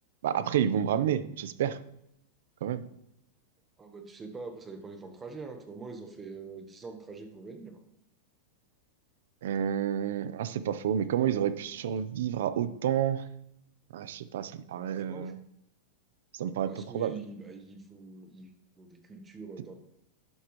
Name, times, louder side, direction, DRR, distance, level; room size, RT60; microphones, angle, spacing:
voice 1, 0.2-1.8 2.6-2.8 9.4-13.2 13.9-15.4 16.3-17.1, right 9 dB, 75° right, 13 dB, 0.8 m, -29 dB
voice 2, 3.8-7.8 14.7-15.3 16.6-18.5 18.8-19.8, right 4 dB, 15° right, 5 dB, 1.2 m, -44 dB
12.0 x 11.0 x 3.2 m, 0.78 s
supercardioid pair, 150°, 0 cm